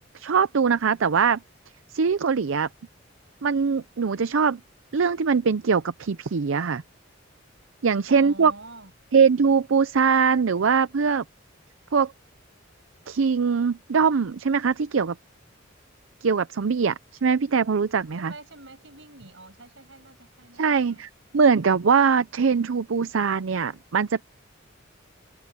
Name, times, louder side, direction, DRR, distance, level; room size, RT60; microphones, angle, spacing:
voice 1, 0.1-1.4 1.9-2.7 3.4-4.6 4.9-6.8 7.8-8.5 9.1-11.2 11.9-12.1 13.1-15.2 16.2-18.3 20.6-24.2, right 6 dB, 85° right, 0.6 m, -22 dB
voice 2, 8.1-8.9 18.1-21.1, right 2 dB, 70° right, 7.8 m, -45 dB
head